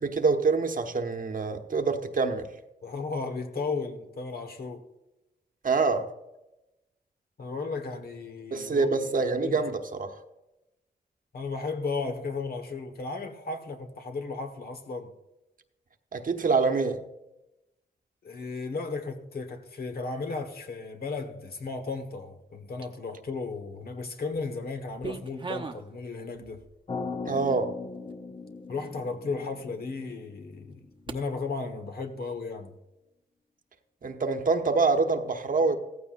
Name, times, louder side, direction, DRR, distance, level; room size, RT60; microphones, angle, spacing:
voice 1, 0.0-2.5 5.6-6.1 8.5-10.1 16.1-17.0 27.3-27.7 34.0-35.8, right 4 dB, 55° right, 1.1 m, -26 dB
voice 2, 2.8-4.8 7.4-8.9 9.4-9.7 11.3-15.1 18.2-26.6 28.7-32.7, left 4 dB, 65° left, 1.4 m, -35 dB
sound 1, 22.5-23.2 23.8-24.4 24.7-25.9 26.3-26.8 27.4-27.5 28.1-28.2 28.8-28.9 31.1-31.2, right 3 dB, 30° right, 0.9 m, -39 dB
sound 2, 26.9-31.0, left 4 dB, 35° left, 0.8 m, -39 dB
16.0 x 14.5 x 2.6 m
wide cardioid pair, 110°, 17 cm